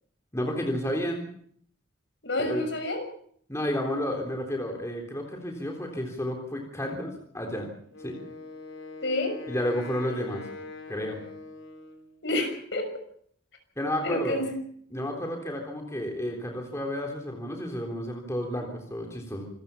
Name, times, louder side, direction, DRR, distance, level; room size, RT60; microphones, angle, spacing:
voice 1, 0.3-1.3 2.4-2.6 3.5-7.7 8.0-8.2 9.5-10.5 10.9-11.2 13.8-14.4 14.9-19.5, left 1 dB, 15° left, 1 dB, 3.6 m, -31 dB
voice 2, 2.2-3.0 9.0-9.4 12.2-12.9 14.0-14.6, left 1 dB, 65° left, 6 dB, 6.3 m, -28 dB
Wind instrument woodwind instrument, 7.9-12.2, left 3 dB, 80° left, 4.2 m, -43 dB
27.0 x 15.0 x 7.0 m, 0.62 s
head